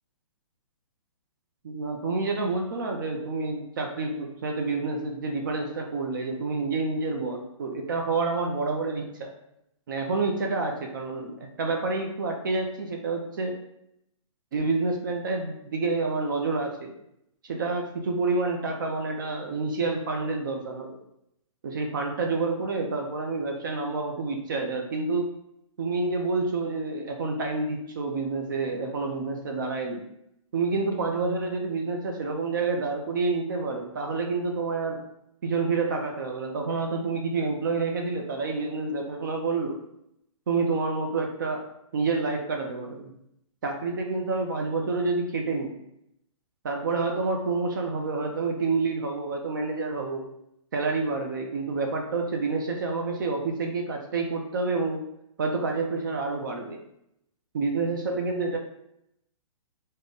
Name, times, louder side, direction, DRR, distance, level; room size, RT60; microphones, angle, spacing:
voice 1, 1.6-9.3 9.9-13.6 14.5-16.9 17.4-21.0 21.6-25.3 25.8-30.0 30.5-35.0 35.4-39.8 40.5-41.7 41.9-43.1 43.6-45.8 46.6-50.3 50.7-55.0 55.4-56.8 57.5-58.6, right 3 dB, 40° right, 3 dB, 0.4 m, -28 dB
3.4 x 2.1 x 3.8 m, 0.79 s
hypercardioid pair, 170°, 17 cm